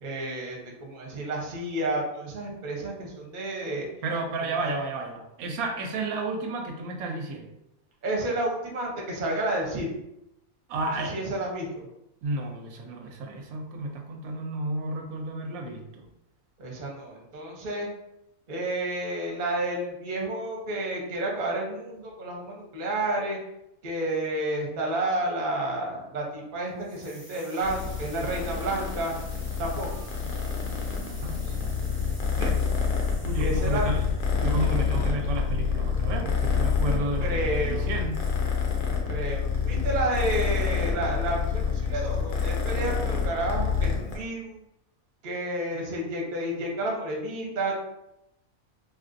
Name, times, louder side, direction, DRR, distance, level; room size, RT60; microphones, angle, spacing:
voice 1, 0.0-3.9 4.5-4.7 8.0-10.0 11.0-11.9 16.6-17.9 18.5-23.4 23.8-29.1 29.6-30.1 33.4-33.9 37.0-37.9 38.9-44.6 45.2-47.8, right 1 dB, 45° right, -2 dB, 0.7 m, -30 dB
voice 2, 4.0-7.5 10.7-11.2 12.2-16.1 30.2-32.8 33.2-34.1 34.4-38.2, right 2 dB, 85° right, 3 dB, 1.0 m, -32 dB
sound 1, 26.8-35.7, equal, 10° left, 0.7 m, -49 dB
Purr, 27.6-44.2, left 6 dB, 60° left, 0.5 m, -27 dB
3.2 x 2.5 x 2.5 m, 0.85 s
omnidirectional pair, 1.5 m